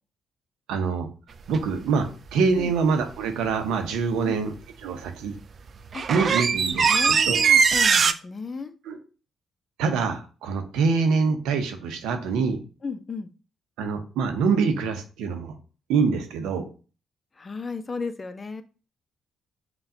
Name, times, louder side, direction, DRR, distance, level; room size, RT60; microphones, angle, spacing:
voice 1, 0.7-1.1 1.5-4.5 4.8-5.3 6.1-7.4 8.9-9.0 9.8-12.6 13.8-15.5 15.9-16.6, right 5 dB, 85° right, 6 dB, 0.7 m, -25 dB
creaky wooden door and handle no clock-middle, 1.5-1.7 5.3-5.4 5.7-8.1, right 6 dB, 55° right, 0.3 m, -20 dB
voice 2, 6.9-8.7 12.8-13.3 17.4-18.6, left 4 dB, 40° left, 10 dB, 0.5 m, -34 dB
5.6 x 2.3 x 2.7 m, 0.35 s
supercardioid pair, 55°, 0 cm